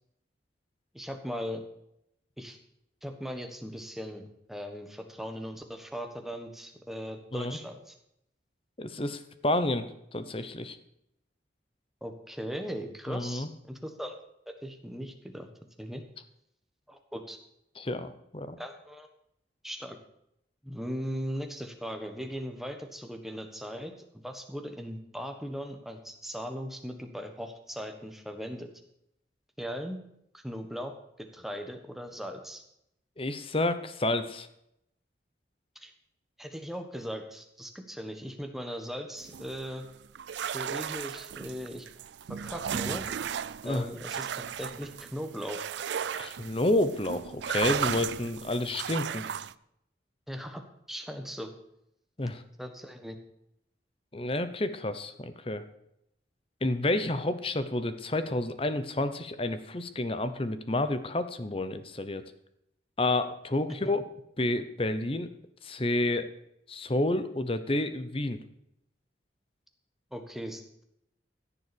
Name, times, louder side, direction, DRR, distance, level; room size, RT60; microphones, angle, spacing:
voice 1, 0.9-1.6 2.4-2.6 3.0-8.0 12.0-14.1 14.6-15.5 15.8-16.0 16.9-17.4 18.6-19.1 19.6-20.0 20.6-23.9 24.2-28.7 29.6-30.0 30.3-32.6 35.7-35.9 36.4-39.8 40.5-41.9 42.3-43.1 43.6-45.7 50.3-50.6 50.9-51.5 52.6-53.2 70.1-70.8, equal, ahead, 5 dB, 1.3 m, -38 dB
voice 2, 8.8-10.8 13.1-13.5 17.8-18.6 33.2-34.5 43.6-43.9 46.1-49.2 52.2-52.4 54.1-55.6 56.6-62.2 63.0-64.0 64.4-65.3 65.6-66.3 66.7-68.4, left 2 dB, 30° left, 11 dB, 0.9 m, -30 dB
sound 1, 39.2-49.5, right 8 dB, 75° right, 0.4 m, -35 dB
15.0 x 7.1 x 6.9 m, 0.78 s
head